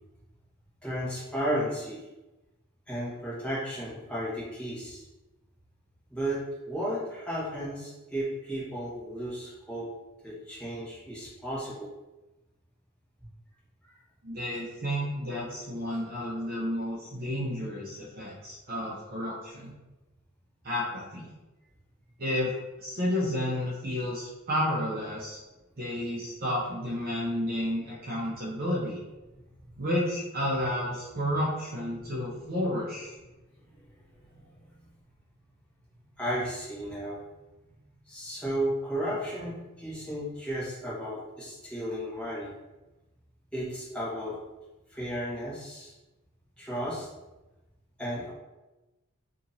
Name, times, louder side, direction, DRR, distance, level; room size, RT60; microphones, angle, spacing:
voice 1, 0.8-2.0 2.9-5.0 6.1-9.9 10.2-11.9 13.9-14.0 14.5-14.6 28.2-28.4 32.0-32.5 33.7-34.5 36.2-37.2 38.0-42.5 43.5-44.4 44.9-45.9 46.6-47.1 48.0-48.3, equal, 5° left, -9 dB, 1.2 m, -34 dB
voice 2, 14.2-19.7 20.6-21.3 22.2-22.5 22.8-25.4 25.8-29.0 29.8-33.1, equal, 45° right, -6 dB, 0.7 m, -31 dB
2.8 x 2.6 x 3.9 m, 1.1 s
head